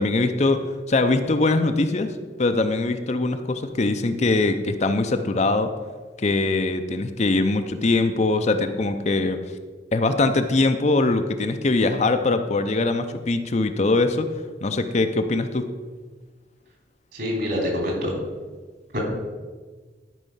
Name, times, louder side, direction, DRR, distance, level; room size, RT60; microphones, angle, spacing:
voice 1, 0.0-2.1 2.4-5.7 6.2-9.4 9.9-14.3 14.6-15.6, left 2 dB, 40° left, 8 dB, 0.5 m, -22 dB
voice 2, 17.1-18.1 18.9-19.0, left 1 dB, 60° right, -1 dB, 3.3 m, -25 dB
12.5 x 5.5 x 5.5 m, 1.4 s
head